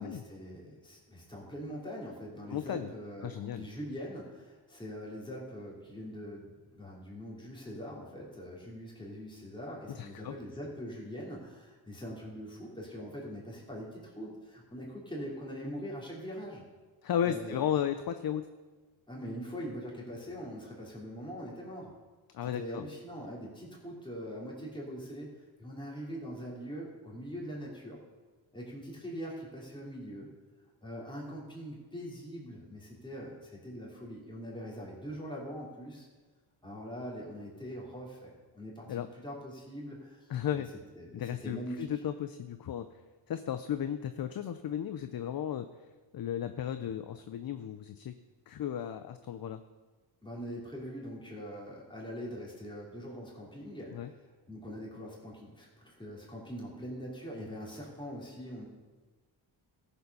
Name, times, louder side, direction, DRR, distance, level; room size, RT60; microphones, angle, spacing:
voice 1, 0.0-16.6 17.2-17.6 19.1-21.9 22.4-25.3 25.6-28.0 28.5-30.3 30.8-36.1 36.6-40.3 40.5-40.6 40.9-41.1 41.4-41.9 50.2-54.1 54.5-58.7, equal, 10° left, -5 dB, 3.2 m, -42 dB
voice 2, 2.5-2.9 3.2-3.7 9.9-10.3 17.0-18.5 22.3-22.8 38.9-39.1 40.3-40.7 41.1-42.9 43.3-45.7 46.1-48.1 48.5-49.6 53.9-54.1, left 9 dB, 50° left, 11 dB, 0.6 m, -34 dB
13.5 x 7.0 x 5.5 m, 1.3 s
cardioid pair, 65°, 48 cm